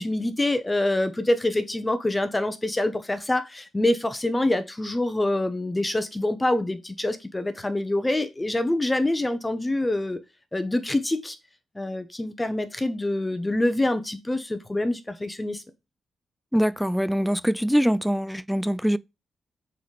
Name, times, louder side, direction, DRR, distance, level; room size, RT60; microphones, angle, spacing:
voice 1, 0.0-10.2 10.5-11.4 11.7-15.6, left 1 dB, 15° left, 1.0 m, -26 dB
voice 2, 16.5-19.0, equal, ahead, 0.3 m, -23 dB
7.7 x 4.1 x 3.3 m
cardioid pair, 70°, 0 cm